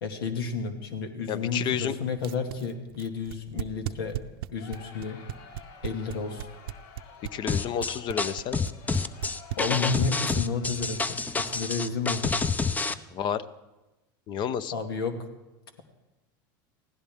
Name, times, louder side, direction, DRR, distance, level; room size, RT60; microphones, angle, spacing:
voice 1, 0.0-4.1 4.5-5.2 5.8-6.5 9.6-12.4 12.9-13.0 14.7-15.2, left 5 dB, 85° left, 6 dB, 2.1 m, -31 dB
voice 2, 1.3-1.9 7.3-8.6 13.1-13.4 14.3-14.7, left 8 dB, 40° left, 15 dB, 0.8 m, -30 dB
sound 1, 2.2-10.1, right 14 dB, 80° right, 0.6 m, -36 dB
Crowd, 4.5-12.3, left 4 dB, 65° left, 1.7 m, -50 dB
sound 2, 7.5-12.9, left 4 dB, 15° left, 0.5 m, -28 dB
24.5 x 16.0 x 3.6 m, 1.0 s
supercardioid pair, 115°, 12 cm